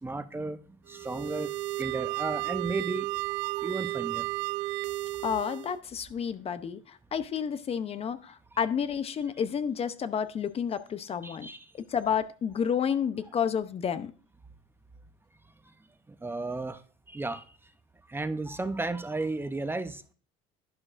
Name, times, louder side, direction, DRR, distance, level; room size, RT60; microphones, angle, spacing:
voice 1, 0.0-3.1 3.4-4.3 8.5-8.7 11.2-11.7 13.3-13.4 15.7-15.8 16.1-16.8 17.1-17.5 18.1-20.1, right 2 dB, 15° right, 0.7 m, -34 dB
sound 1, 0.9-5.8, right 18 dB, 75° right, 0.4 m, -33 dB
voice 2, 5.2-11.5 11.7-14.1, left 7 dB, 35° left, 0.7 m, -30 dB
11.0 x 9.8 x 2.5 m
supercardioid pair, 95°, 17 cm